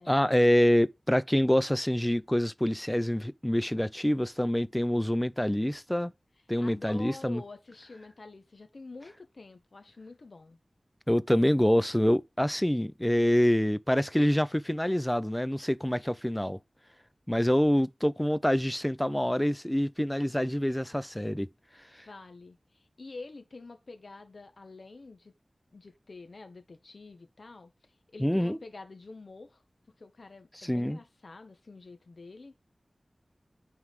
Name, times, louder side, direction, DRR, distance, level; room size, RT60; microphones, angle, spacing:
voice 1, 0.1-6.1 6.5-7.4 11.1-16.6 17.3-21.5 21.9-22.0 28.2-28.6 30.6-31.0, equal, 10° left, 0.5 m, -26 dB
voice 2, 6.6-10.6 22.0-25.3 25.7-29.6 30.0-32.6, left 3 dB, 70° left, 1.5 m, -47 dB
9.4 x 4.7 x 3.6 m
wide cardioid pair, 60°, 0 cm